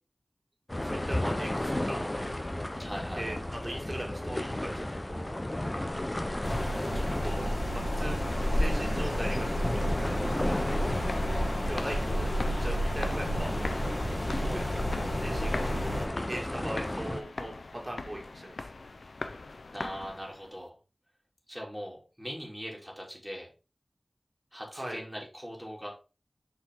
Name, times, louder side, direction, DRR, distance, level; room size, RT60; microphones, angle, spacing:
sound 1, 0.7-17.2, left 1 dB, 25° left, 0.9 m, -33 dB
voice 1, 0.8-2.1 3.2-3.4 3.6-5.4 6.7-8.2 8.5-10.8 11.7-13.5 14.4-17.5 17.8-18.7 24.7-25.0, right 1 dB, 30° right, 0 dB, 2.2 m, -40 dB
voice 2, 2.8-3.3 19.7-20.8 21.5-23.5 24.5-25.9, equal, ahead, -2 dB, 3.2 m, -40 dB
sound 2, 6.4-16.1, equal, 55° left, 3.1 m, -31 dB
sound 3, 10.5-20.5, left 3 dB, 85° left, 0.6 m, -41 dB
6.5 x 5.0 x 3.7 m, 0.32 s
wide cardioid pair, 45°, 0 cm